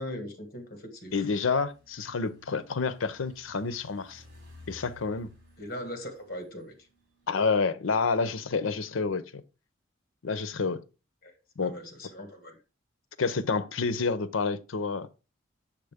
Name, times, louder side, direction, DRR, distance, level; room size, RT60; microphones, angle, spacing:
voice 1, 0.0-1.3 5.6-6.7 11.2-11.3 11.6-12.6, left 1 dB, 45° left, 1.7 m, -40 dB
voice 2, 1.1-4.2 4.7-5.3 7.3-9.4 10.2-10.8 11.6-11.7 13.2-15.1, left 4 dB, 90° left, 0.6 m, -29 dB
sound 1, 1.1-7.3, left 2 dB, 55° right, 3.7 m, -56 dB
7.2 x 6.7 x 3.5 m
head